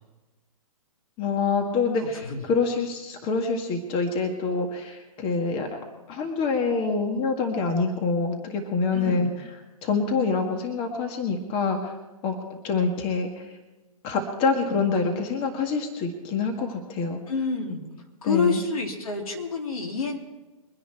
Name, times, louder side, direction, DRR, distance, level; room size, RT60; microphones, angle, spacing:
voice 1, 1.2-5.7 6.1-9.3 9.8-11.9 12.2-13.6 14.0-17.2 18.2-18.6, left 4 dB, 30° left, 4 dB, 1.8 m, -26 dB
voice 2, 2.0-2.4 8.9-9.3 17.3-17.8 18.2-20.2, left 4 dB, 75° left, 1 dB, 3.3 m, -28 dB
23.5 x 10.0 x 4.6 m, 1.2 s
hypercardioid pair, 125°, 18 cm